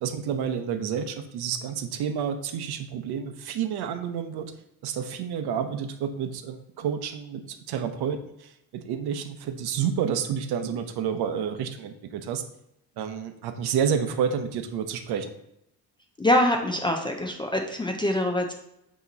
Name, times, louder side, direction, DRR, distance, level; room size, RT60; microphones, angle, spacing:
voice 1, 0.0-4.5 4.8-12.4 13.0-15.3, right 7 dB, 70° right, 8 dB, 0.7 m, -29 dB
voice 2, 16.2-18.5, left 1 dB, 15° left, 2 dB, 0.3 m, -24 dB
8.2 x 3.0 x 3.9 m, 0.82 s
cardioid pair, 155°, 40 cm